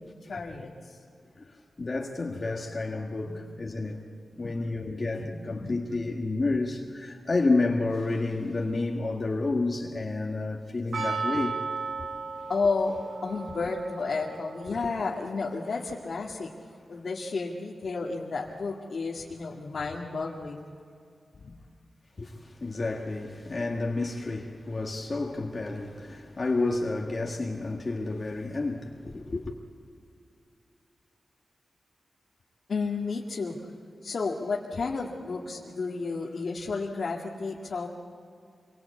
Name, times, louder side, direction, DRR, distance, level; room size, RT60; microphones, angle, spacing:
voice 1, 0.3-1.0 3.3-3.4 4.3-4.6 5.2-5.8 12.5-13.0 13.2-16.5 16.9-20.8 21.4-21.5 32.7-33.7 34.0-37.9, left 4 dB, 60° left, 2.0 m, -32 dB
voice 2, 1.4-4.0 4.4-11.6 22.2-29.5, left 3 dB, 35° left, 1.6 m, -30 dB
Percussion, 10.9-16.2, right 4 dB, 60° right, 3.7 m, -36 dB
27.0 x 23.5 x 8.3 m
wide cardioid pair, 170°, 0 cm